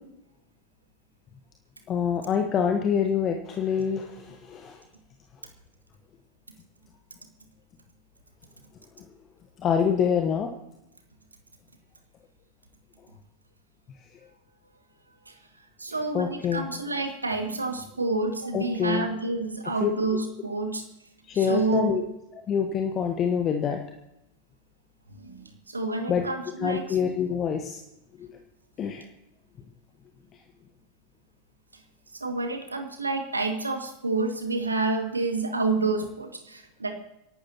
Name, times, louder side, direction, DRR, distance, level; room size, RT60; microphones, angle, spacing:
voice 1, 1.9-4.8 9.6-10.5 16.1-16.7 18.5-19.0 19.8-19.9 21.3-22.0 22.5-23.8 26.1-26.2 26.6-27.8 28.2-28.3 28.8-29.0, left 7 dB, 30° left, 4 dB, 1.2 m, -26 dB
voice 2, 15.8-20.8 21.5-22.0 25.1-25.4 25.7-27.0 32.2-36.9, right 3 dB, 80° right, 5 dB, 2.0 m, -28 dB
27.0 x 12.0 x 2.9 m, 0.89 s
figure-of-eight pair, 90°, 0 cm